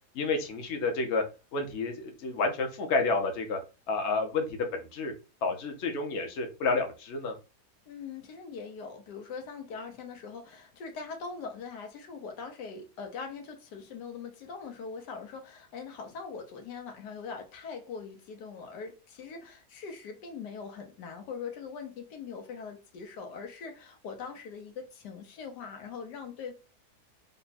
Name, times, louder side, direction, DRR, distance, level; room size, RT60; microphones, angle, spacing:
voice 1, 0.1-1.2 1.5-3.6 3.9-5.1 5.4-7.3, left 3 dB, 55° left, 0.9 m, -30 dB
voice 2, 7.9-26.5, left 5 dB, 90° left, 1.4 m, -42 dB
3.5 x 2.2 x 4.0 m
omnidirectional pair, 1.7 m